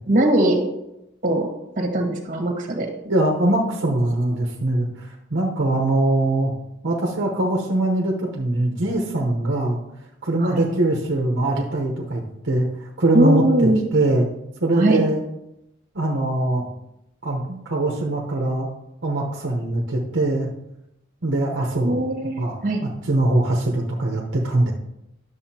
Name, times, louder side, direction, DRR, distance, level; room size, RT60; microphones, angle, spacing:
voice 1, 0.1-0.6 1.2-1.5 1.8-2.9 10.4-10.6 13.1-13.8 14.7-15.0 21.8-22.8, right 1 dB, 45° right, 2 dB, 1.5 m, -20 dB
voice 2, 3.0-6.5 6.8-9.8 10.2-12.7 13.0-13.4 13.9-14.3 14.6-15.2 15.9-16.6 17.2-18.7 19.0-20.5 21.2-22.0 22.4-24.7, right 1 dB, 65° right, 0 dB, 1.0 m, -22 dB
11.0 x 6.9 x 2.8 m, 0.86 s
head